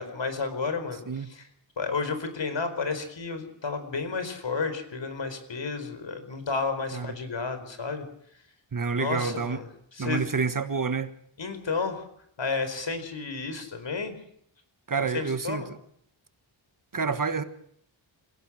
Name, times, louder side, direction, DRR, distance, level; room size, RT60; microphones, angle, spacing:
voice 1, 0.0-1.4 1.8-8.1 8.9-9.6 9.9-10.3 11.4-12.1 12.4-14.2 15.0-15.7, left 4 dB, 65° left, 4.7 m, -32 dB
voice 2, 8.7-9.6 10.0-11.1 14.9-15.6 16.9-17.4, right 5 dB, 40° right, 1.5 m, -28 dB
28.0 x 17.0 x 6.4 m
wide cardioid pair, 135°, 48 cm